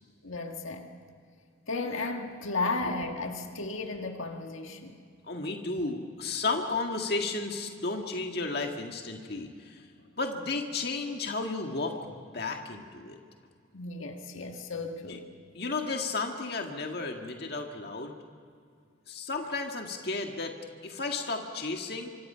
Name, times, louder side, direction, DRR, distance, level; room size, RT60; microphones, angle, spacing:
voice 1, 0.2-0.9 1.7-5.0 13.7-15.2, left 3 dB, 85° left, 1.9 m, -34 dB
voice 2, 5.3-9.8 10.2-13.2 15.1-15.2 15.5-18.2 19.1-20.6 20.8-22.1, left 3 dB, 50° left, 1.8 m, -33 dB
25.5 x 24.5 x 5.7 m
head